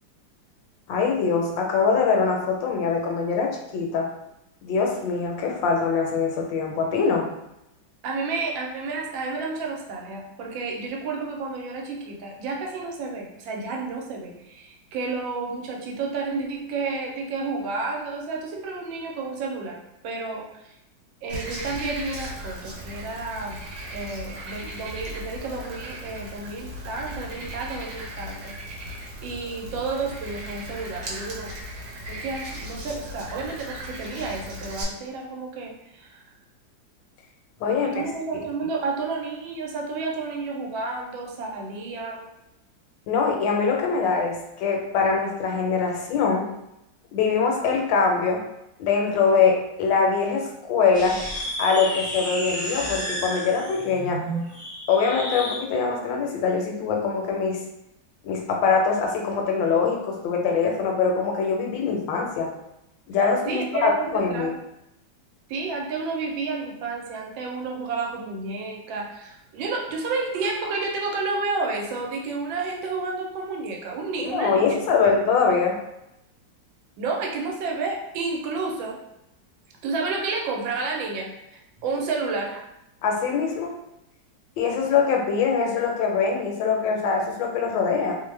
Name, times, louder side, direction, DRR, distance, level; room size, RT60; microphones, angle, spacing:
voice 1, 0.9-4.1 4.6-7.3 37.6-38.1 43.1-46.5 47.1-48.4 48.8-51.2 51.6-54.2 54.9-57.6 58.2-62.5 63.1-64.5 74.2-75.8 83.0-83.7 84.6-88.1, left 5 dB, 80° left, 1 dB, 1.3 m, -23 dB
voice 2, 8.0-19.8 20.0-20.7 21.2-23.6 23.9-28.5 29.2-31.5 32.1-36.2 37.7-42.3 63.5-64.5 65.5-74.8 77.0-79.0 79.8-81.3 81.8-82.6, right 3 dB, 85° right, 0 dB, 1.3 m, -31 dB
Frog, 21.3-34.8, equal, 65° right, 1.2 m, -37 dB
sound 1, 50.9-55.6, equal, 10° left, 0.4 m, -32 dB
3.1 x 2.1 x 3.1 m, 0.86 s
omnidirectional pair, 2.0 m